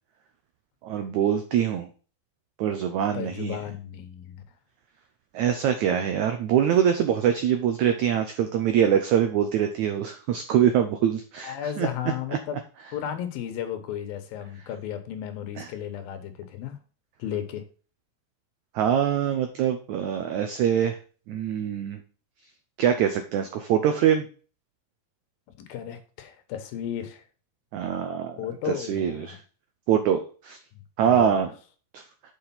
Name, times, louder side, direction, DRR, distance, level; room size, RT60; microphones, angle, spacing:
voice 1, 0.8-1.9 2.6-3.6 5.3-11.9 15.6-15.7 18.7-20.9 21.3-22.0 22.8-24.2 27.7-28.4 28.6-29.4 29.9-30.6 31.0-31.5 31.9-32.0, right 9 dB, 80° right, 7 dB, 1.7 m, -24 dB
voice 2, 3.1-4.4 11.4-12.6 12.9-16.8 17.2-17.6 25.7-27.2 28.4-29.4 30.7-31.5, left 10 dB, 75° left, 8 dB, 2.8 m, -34 dB
7.1 x 5.0 x 5.6 m, 0.38 s
omnidirectional pair, 4.3 m